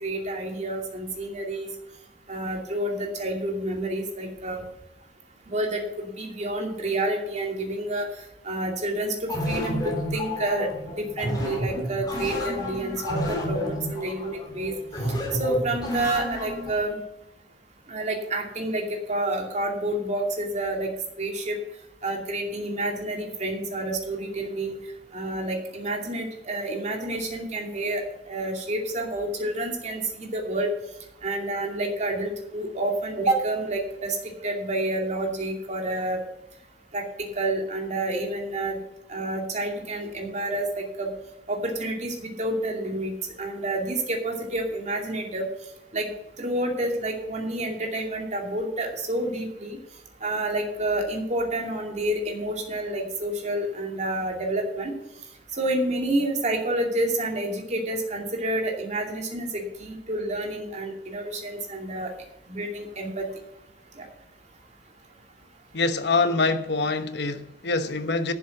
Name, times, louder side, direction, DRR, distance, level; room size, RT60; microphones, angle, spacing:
voice 1, 0.0-1.7 2.3-4.6 5.5-8.1 8.4-14.7 15.4-17.0 17.9-20.9 21.2-21.6 22.0-24.8 25.1-30.7 31.2-34.2 34.4-36.2 36.9-38.8 39.1-41.1 41.5-45.5 45.9-46.1 46.4-49.8 50.2-54.9 55.5-62.1 62.5-63.3 63.9-64.1, right 1 dB, 40° right, 2.6 m, -29 dB
sound 1, 9.3-16.8, left 1 dB, 25° left, 3.7 m, -30 dB
voice 2, 65.7-68.3, left 3 dB, 65° left, 1.1 m, -25 dB
11.5 x 7.3 x 6.0 m
head